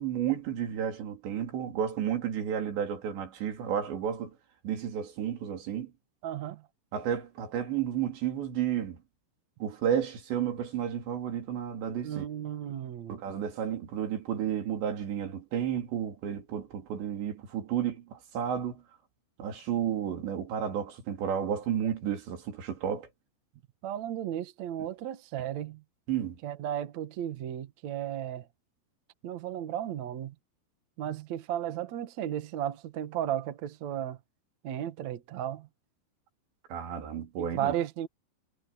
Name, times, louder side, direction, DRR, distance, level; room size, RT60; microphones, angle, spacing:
voice 1, 0.0-4.4 4.6-5.9 6.9-9.0 9.6-12.3 13.1-18.8 19.4-23.1 26.1-26.4 36.7-37.7, right 9 dB, 85° right, 5.4 m, -32 dB
voice 2, 6.2-6.6 12.0-13.2 23.8-25.8 26.4-28.5 29.2-30.3 31.0-34.2 34.6-35.7 37.4-38.1, right 11 dB, 55° right, 2.1 m, -34 dB
omnidirectional pair, 4.9 m